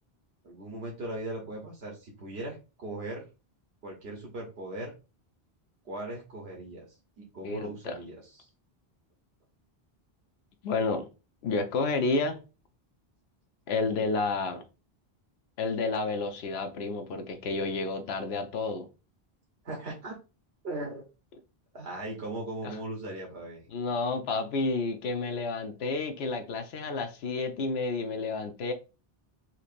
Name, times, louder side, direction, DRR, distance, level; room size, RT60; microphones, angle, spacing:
voice 1, 0.4-3.2 3.8-4.9 5.8-6.8 7.2-8.5 19.6-20.2 20.6-21.0 21.7-23.6, right 2 dB, 85° right, 1.2 m, -38 dB
voice 2, 7.4-8.0 10.6-11.1 11.4-12.4 13.7-14.6 15.6-18.9 22.6-22.8 23.7-28.7, left 3 dB, 85° left, 0.9 m, -30 dB
4.4 x 2.7 x 2.5 m
omnidirectional pair, 1.0 m